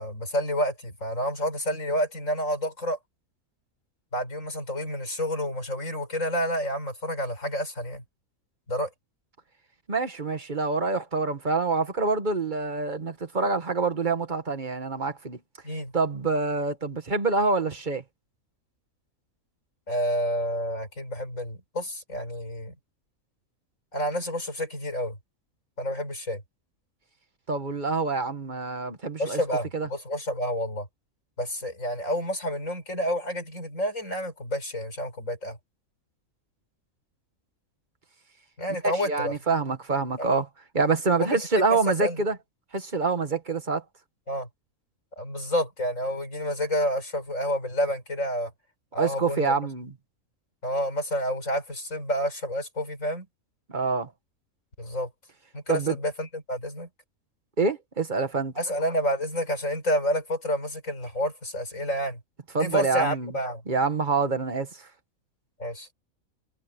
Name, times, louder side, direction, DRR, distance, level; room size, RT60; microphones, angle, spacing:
voice 1, 0.0-3.0 4.1-8.0 8.7-8.9 15.6-15.9 19.9-22.7 23.9-25.2 25.8-26.4 29.2-30.9 31.4-35.6 38.6-39.6 40.2-40.4 41.2-41.4 41.7-42.2 44.3-44.5 45.2-48.5 48.9-49.5 50.6-53.3 54.8-55.1 55.5-56.9 58.6-62.2 62.6-63.6 65.6-65.9, equal, 60° left, 8.0 m, -29 dB
voice 2, 9.9-15.4 15.9-18.0 27.5-29.4 29.7-29.9 38.8-40.5 40.7-42.4 42.7-43.8 49.0-49.9 53.7-54.1 55.7-56.0 57.6-58.5 62.5-63.3 63.7-64.9, right 4 dB, 35° right, 1.8 m, -26 dB
omnidirectional pair, 1.5 m